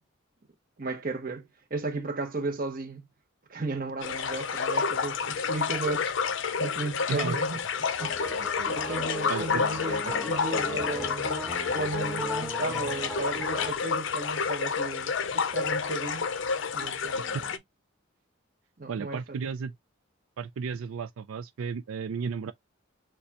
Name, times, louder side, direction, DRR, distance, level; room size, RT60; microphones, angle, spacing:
voice 1, 0.8-3.1 3.5-6.1 6.6-7.6 8.0-8.2 8.7-16.3 16.7-17.5 18.8-19.4, right 3 dB, 45° right, 0.9 m, -35 dB
sound 1, 4.0-17.6, left 5 dB, 60° left, 0.5 m, -30 dB
sound 2, 8.0-13.7, left 1 dB, ahead, 1.0 m, -37 dB
voice 2, 9.3-9.6 10.0-10.1 17.3-17.5 18.9-19.7 20.4-22.5, right 6 dB, 85° right, 0.4 m, -33 dB
6.6 x 2.3 x 2.8 m
head